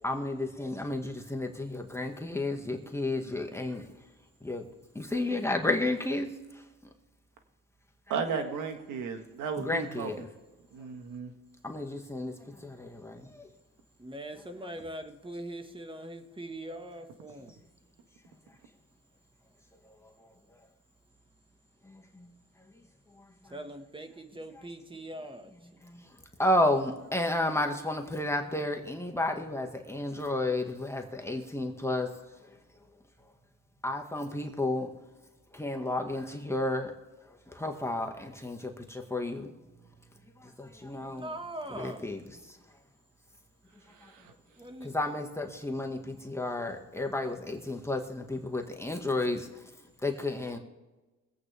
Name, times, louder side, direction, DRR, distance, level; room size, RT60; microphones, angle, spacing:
voice 1, 0.0-3.8 4.4-4.6 4.9-6.3 9.6-10.2 11.6-12.3 12.6-13.5 22.2-22.3 25.8-26.0 26.4-32.1 33.8-34.9 35.5-36.9 37.5-39.5 40.6-41.3 41.7-42.4 44.8-49.5 50.0-50.6, left 2 dB, 10° left, 2 dB, 1.7 m, -32 dB
voice 2, 8.1-10.1 10.7-11.3, right 6 dB, 85° right, 6 dB, 1.7 m, -34 dB
voice 3, 14.0-17.5 23.5-25.5 41.0-42.1 44.6-44.9, right 1 dB, 15° right, 6 dB, 1.5 m, -41 dB
24.0 x 8.5 x 3.4 m, 1.2 s
cardioid pair, 90°, 30 cm